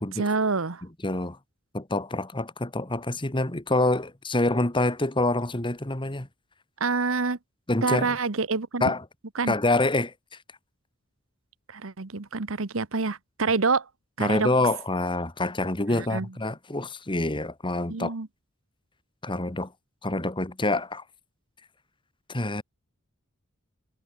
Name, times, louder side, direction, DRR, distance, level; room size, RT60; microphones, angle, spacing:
voice 1, 0.1-0.8 6.8-7.4 7.8-8.9 9.3-9.6 11.7-13.9 14.2-14.5 15.9-16.3 17.9-18.3, right 4 dB, 70° right, 1.1 m, -27 dB
voice 2, 1.0-1.4 1.7-6.3 7.7-8.2 8.8-9.0 9.5-10.1 14.2-18.1 19.2-19.7 20.0-21.0 22.3-22.6, left 2 dB, 25° left, 2.0 m, -26 dB
head